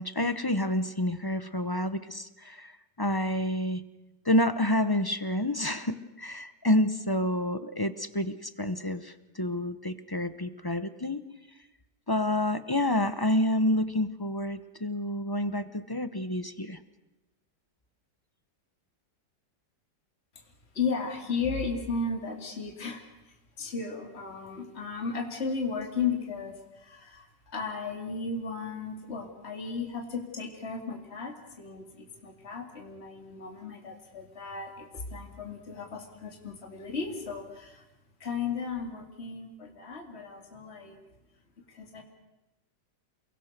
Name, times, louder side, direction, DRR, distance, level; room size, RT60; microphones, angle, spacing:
voice 1, 0.0-3.8 4.2-11.2 12.1-16.8, left 1 dB, 20° left, 12 dB, 0.6 m, -29 dB
voice 2, 20.7-37.8 38.2-41.0 41.7-42.0, left 4 dB, 35° left, 2 dB, 2.8 m, -35 dB
29.0 x 22.0 x 6.7 m, 0.98 s
omnidirectional pair, 1.9 m